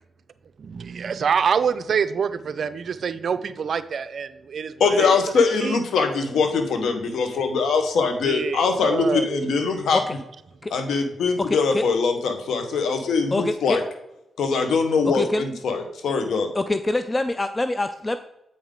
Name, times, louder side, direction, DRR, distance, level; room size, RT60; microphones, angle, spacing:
voice 1, 0.6-5.1 5.6-5.8 8.2-9.9, right 6 dB, 65° right, 12 dB, 0.5 m, -26 dB
voice 2, 4.8-10.0 10.7-13.8 14.4-16.5, left 4 dB, 80° left, 6 dB, 1.1 m, -22 dB
voice 3, 11.4-11.8 13.3-13.8 15.0-15.4 16.5-18.2, left 2 dB, 25° left, 10 dB, 0.4 m, -25 dB
7.8 x 5.3 x 3.8 m, 0.86 s
cardioid pair, 70°, 0 cm